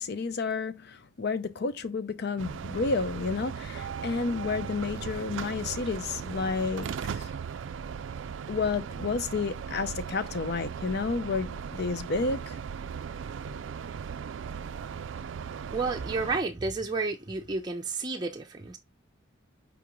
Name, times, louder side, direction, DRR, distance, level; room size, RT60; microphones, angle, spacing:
voice 1, 0.0-6.9 7.2-7.3 8.5-12.5, left 4 dB, 55° left, 0.5 m, -31 dB
sound 1, 2.4-16.4, right 7 dB, 70° right, 0.3 m, -37 dB
voice 2, 15.7-18.8, right 3 dB, 20° right, 0.5 m, -31 dB
4.9 x 3.6 x 3.0 m
head